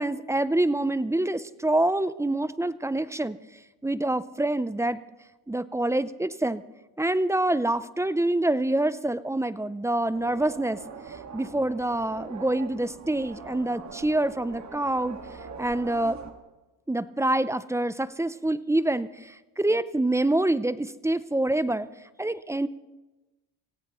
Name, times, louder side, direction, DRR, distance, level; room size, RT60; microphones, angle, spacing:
voice 1, 0.0-3.4 3.8-5.0 5.5-6.6 7.0-10.8 11.3-15.2 15.6-16.2 16.9-21.9 22.2-22.7, right 1 dB, 5° right, 16 dB, 0.4 m, -26 dB
sound 1, 10.1-16.3, right 5 dB, 40° right, 1.7 m, -42 dB
26.0 x 17.0 x 3.0 m, 1.1 s
cardioid pair, 95°, 43 cm